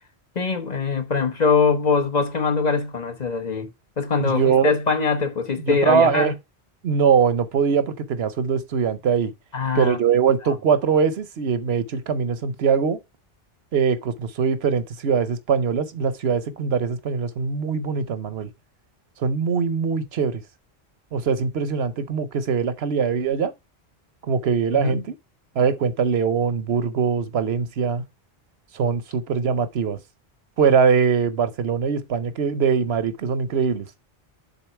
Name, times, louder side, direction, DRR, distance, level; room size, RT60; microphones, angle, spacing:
voice 1, 0.3-3.7 4.0-6.3 9.5-10.0 10.5-10.6 24.8-25.0, left 5 dB, 45° left, 1.1 m, -22 dB
voice 2, 4.2-4.7 5.6-6.3 6.8-9.3 9.7-13.0 13.7-18.5 19.2-20.4 21.1-23.5 24.2-25.0 25.5-28.0 28.7-30.0 30.6-33.9, right 6 dB, 80° right, 1.1 m, -22 dB
7.0 x 4.0 x 4.4 m
omnidirectional pair, 1.1 m